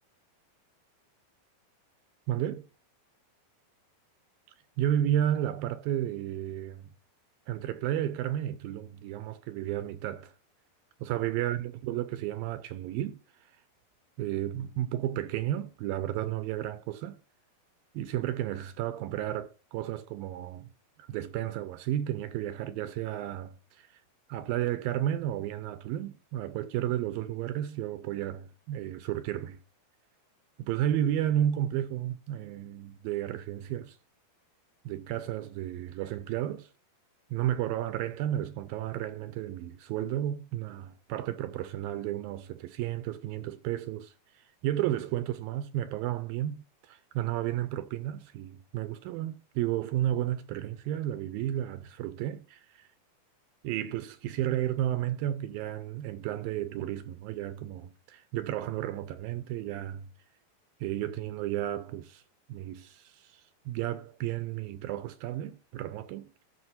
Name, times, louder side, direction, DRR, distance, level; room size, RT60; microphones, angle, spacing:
voice 1, 2.3-2.7 4.8-6.9 7.5-10.3 11.0-13.2 14.2-17.2 17.9-20.7 21.1-24.0 24.3-29.6 30.6-34.0 34.9-36.7 37.3-52.9 53.6-60.1 60.8-62.2 62.5-66.4, right 12 dB, 80° right, 2.3 m, -32 dB
12.5 x 5.3 x 4.3 m
omnidirectional pair, 4.4 m